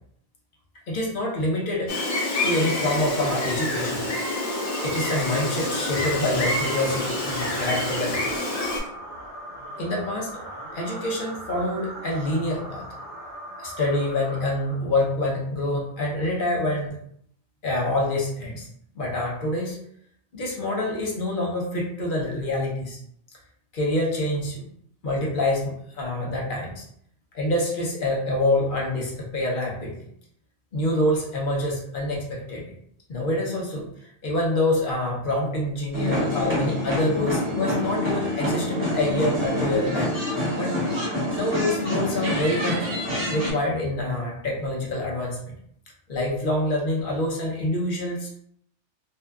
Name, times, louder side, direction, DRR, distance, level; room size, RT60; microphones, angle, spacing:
voice 1, 0.9-1.9 2.4-4.0 4.8-8.5 9.8-10.3 10.7-12.9 13.6-17.0 17.6-18.7 19.0-19.8 20.3-23.0 23.7-24.6 25.0-26.9 27.3-30.0 30.7-32.7 33.1-33.9 34.2-40.1 40.5-40.7 41.3-42.9 43.2-45.5 46.1-48.4, left 1 dB, 55° left, -3 dB, 0.8 m, -26 dB
Gull seagull, 1.9-8.8, left 1 dB, 75° left, 1.2 m, -27 dB
sound 1, 4.4-15.1, right 1 dB, 60° right, 0.7 m, -39 dB
sound 2, 35.9-43.5, left 1 dB, 10° right, 0.8 m, -26 dB
2.6 x 2.3 x 2.2 m, 0.69 s
omnidirectional pair, 1.2 m